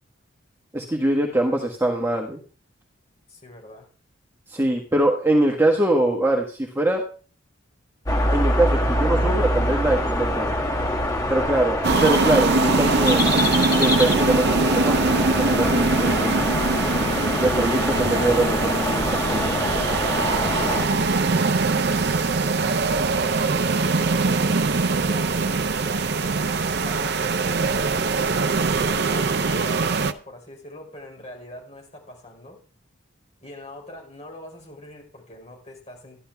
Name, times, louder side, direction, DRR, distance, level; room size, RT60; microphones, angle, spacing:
voice 1, 0.7-2.4 4.5-7.0 8.3-10.6 11.3-11.8 12.0-13.3 13.8-16.6 17.4-19.5, right 1 dB, 10° right, 0 dB, 1.4 m, -23 dB
voice 2, 3.3-3.9 20.1-22.1 22.4-24.0 24.8-26.1 26.7-32.6 33.4-36.2, left 1 dB, 30° left, 0 dB, 5.0 m, -43 dB
sound 1, 8.1-20.9, left 1 dB, 15° left, 1.5 m, -24 dB
sound 2, 11.8-30.1, right 3 dB, 55° right, 0.7 m, -22 dB
13.5 x 11.5 x 3.5 m, 0.39 s
head